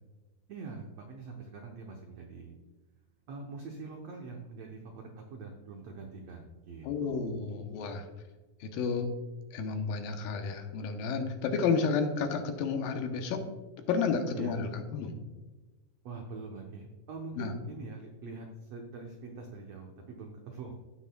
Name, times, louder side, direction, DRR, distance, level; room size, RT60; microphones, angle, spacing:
voice 1, 0.5-2.5 3.3-7.2 14.3-14.5 16.0-20.7, right 4 dB, 85° right, 1 dB, 1.4 m, -44 dB
voice 2, 6.8-8.0 8.6-9.1 9.5-13.4 13.9-15.1 17.4-17.6, left 5 dB, 80° left, 6 dB, 2.5 m, -31 dB
16.5 x 5.9 x 2.2 m, 1.2 s
omnidirectional pair, 4.2 m